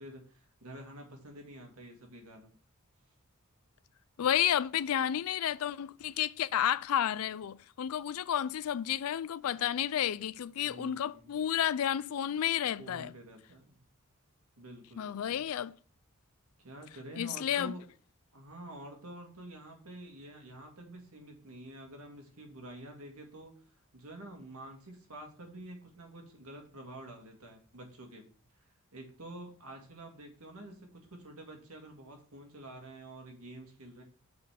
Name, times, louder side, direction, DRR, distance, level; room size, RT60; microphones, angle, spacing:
voice 1, 0.0-2.5 10.6-11.4 12.8-13.8 14.6-15.4 16.6-17.9 18.3-28.3 28.5-34.0, right 1 dB, 85° right, 2.0 m, -48 dB
voice 2, 4.2-13.1 15.0-15.7 17.2-17.7, left 10 dB, 75° left, 0.4 m, -31 dB
6.6 x 4.1 x 5.7 m
head